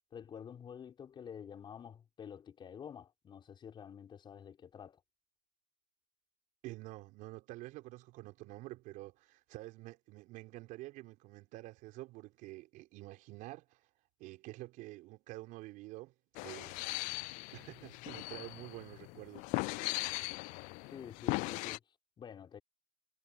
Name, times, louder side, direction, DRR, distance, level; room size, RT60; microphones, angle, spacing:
voice 1, 0.1-5.0 20.9-21.8 22.2-22.6, left 8 dB, 30° left, 4.9 m, -49 dB
voice 2, 6.6-13.8 14.2-16.1 16.4-16.9 17.5-19.6, right 19 dB, 55° right, 5.8 m, -48 dB
sound 1, 16.3-21.8, left 26 dB, 55° left, 0.4 m, -39 dB
supercardioid pair, 120°, 16 cm